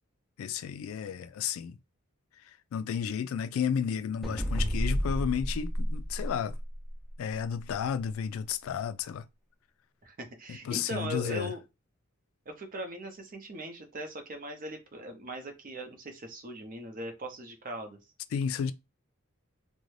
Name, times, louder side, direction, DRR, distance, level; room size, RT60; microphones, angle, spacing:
voice 1, 0.4-1.8 2.7-6.6 7.2-9.2 10.5-11.5 18.3-18.7, left 7 dB, 85° left, 0.3 m, -32 dB
sound 1, 4.2-6.9, equal, ahead, 0.5 m, -30 dB
voice 2, 10.0-11.6 12.5-18.0, equal, 40° right, 0.6 m, -39 dB
2.5 x 2.1 x 3.1 m
head